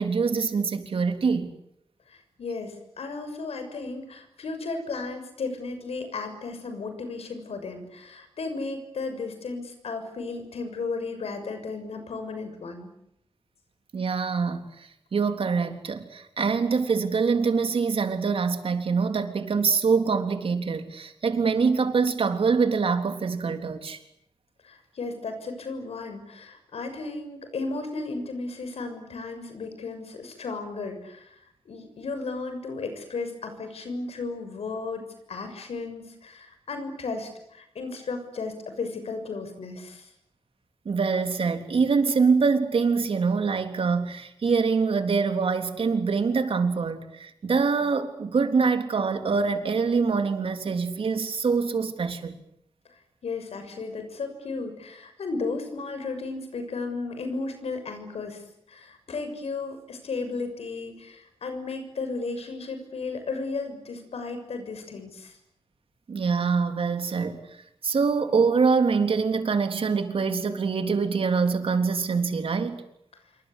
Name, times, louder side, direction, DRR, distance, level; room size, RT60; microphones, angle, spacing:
voice 1, 0.0-1.5 13.9-14.6 15.1-24.0 40.9-52.4 66.1-67.4 67.8-72.8, right 5 dB, 65° right, 6 dB, 3.6 m, -24 dB
voice 2, 2.1-12.9 24.6-31.3 31.6-40.1 53.2-58.4 58.7-65.4, left 3 dB, 90° left, 7 dB, 6.7 m, -34 dB
27.5 x 24.5 x 8.5 m, 0.79 s
wide cardioid pair, 110°, 10 cm